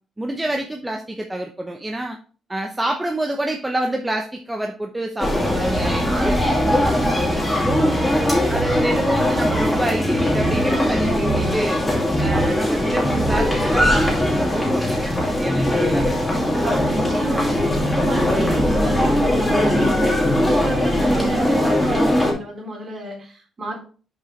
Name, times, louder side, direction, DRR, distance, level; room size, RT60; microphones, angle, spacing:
voice 1, 0.2-2.2 2.5-6.4 7.8-8.0 8.5-11.8 12.2-16.4, right 1 dB, 15° right, 3 dB, 0.9 m, -27 dB
sound 1, 5.2-22.3, left 1 dB, 10° left, 2.8 m, -20 dB
voice 2, 6.8-9.1 12.3-12.8 16.6-23.8, right 2 dB, 40° right, 0 dB, 3.6 m, -31 dB
6.7 x 4.7 x 4.6 m, 0.38 s
cardioid pair, 90°, 0 cm